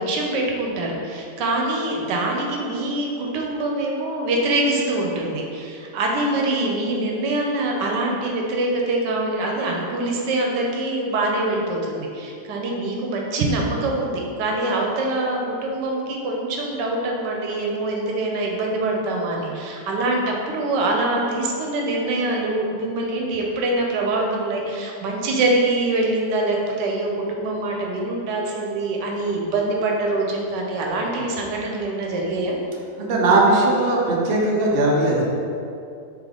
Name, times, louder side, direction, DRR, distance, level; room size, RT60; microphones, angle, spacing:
voice 1, 0.0-32.6, right 2 dB, 85° right, -1 dB, 1.3 m, -24 dB
voice 2, 33.0-35.2, right 2 dB, 55° right, -3 dB, 0.6 m, -18 dB
3.8 x 3.7 x 3.3 m, 2.5 s
omnidirectional pair, 1.9 m